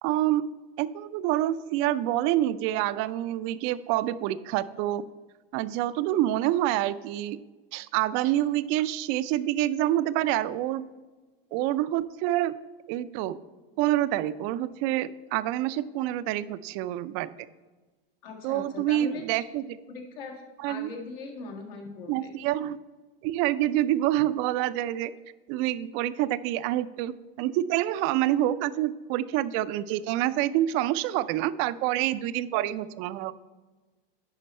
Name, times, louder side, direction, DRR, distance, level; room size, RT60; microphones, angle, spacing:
voice 1, 0.0-0.5 0.8-5.0 5.5-7.4 7.7-10.8 11.5-12.5 12.9-13.4 13.8-17.3 18.4-19.8 20.6-20.9 22.1-22.8 23.2-25.1 25.5-33.3, right 13 dB, 45° right, 15 dB, 0.4 m, -27 dB
voice 2, 18.2-19.2 19.9-22.3, left 4 dB, 75° left, 1 dB, 1.9 m, -40 dB
10.5 x 4.5 x 4.2 m, 1.3 s
supercardioid pair, 125°, 29 cm